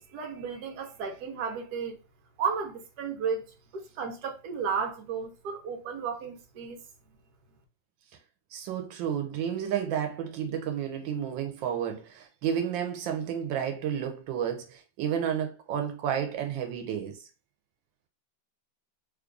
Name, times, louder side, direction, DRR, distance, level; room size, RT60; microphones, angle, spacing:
voice 1, 0.0-2.0 2.4-6.8, right 6 dB, 65° right, 1.3 m, -33 dB
voice 2, 8.5-17.2, right 8 dB, 90° right, 1.4 m, -31 dB
3.2 x 2.4 x 3.7 m
omnidirectional pair, 2.0 m